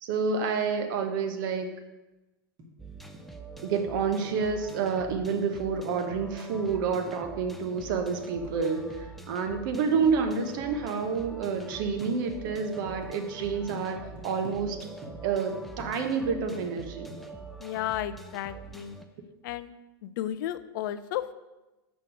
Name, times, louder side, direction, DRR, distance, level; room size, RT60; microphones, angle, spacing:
voice 1, 0.0-1.7 3.6-14.8 15.2-17.1, right 5 dB, 55° right, 6 dB, 1.1 m, -29 dB
sound 1, 2.6-3.3 3.6-5.2 5.5-7.2 7.5-10.2 10.5-11.1 11.5-12.1 12.5-13.1 13.5-13.8 14.2-16.8 17.1-17.3, right 1 dB, 35° right, 1.9 m, -47 dB
sound 2, 2.8-19.0, right 3 dB, ahead, 0.6 m, -44 dB
voice 2, 17.6-19.0 19.4-19.7 20.0-21.3, left 12 dB, 55° left, 13 dB, 0.5 m, -33 dB
5.8 x 5.2 x 6.2 m, 1.1 s
hypercardioid pair, 95°, 13 cm